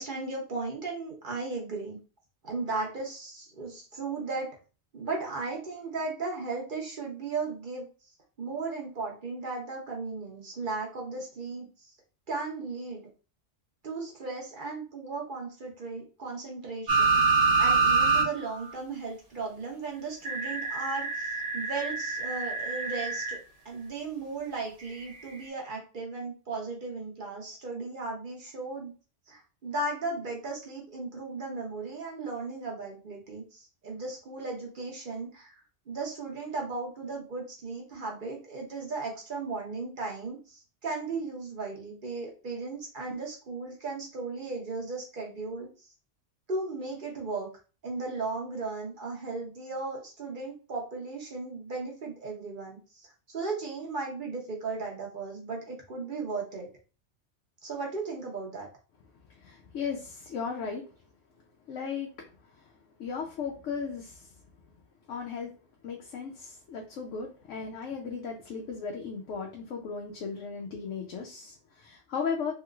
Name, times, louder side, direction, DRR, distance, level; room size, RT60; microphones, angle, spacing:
voice 1, 0.0-2.0 2.4-4.5 4.9-7.9 8.4-11.9 12.3-13.0 13.8-23.4 23.6-28.9 29.3-35.5 35.9-45.7 46.5-47.5 47.8-56.7 57.6-58.7, right 3 dB, 50° right, 0 dB, 0.9 m, -36 dB
sound 1, 16.9-18.3 18.6-18.7 20.2-23.4 25.1-25.2, right 4 dB, 85° right, 1.4 m, -26 dB
voice 2, 59.4-60.8 61.7-62.1 63.0-64.3 65.1-65.5 65.8-72.5, left 5 dB, 85° left, 0 dB, 1.0 m, -36 dB
3.2 x 2.9 x 2.3 m, 0.35 s
omnidirectional pair, 1.2 m